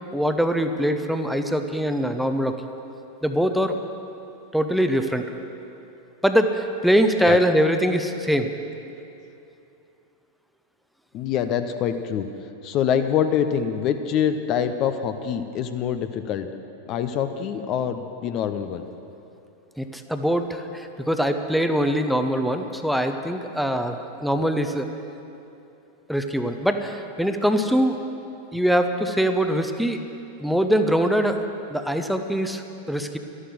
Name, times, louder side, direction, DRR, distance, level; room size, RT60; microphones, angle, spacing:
voice 1, 0.1-2.5 3.2-3.8 4.5-5.3 6.2-8.5 19.8-24.9 26.1-28.0 28.5-30.0 30.4-31.4 31.7-33.2, equal, ahead, 7 dB, 0.8 m, -23 dB
voice 2, 11.1-12.3 12.6-16.5 16.9-18.9, left 8 dB, 35° left, 8 dB, 0.7 m, -25 dB
13.0 x 11.5 x 7.7 m, 2.7 s
figure-of-eight pair, 90°, 0 cm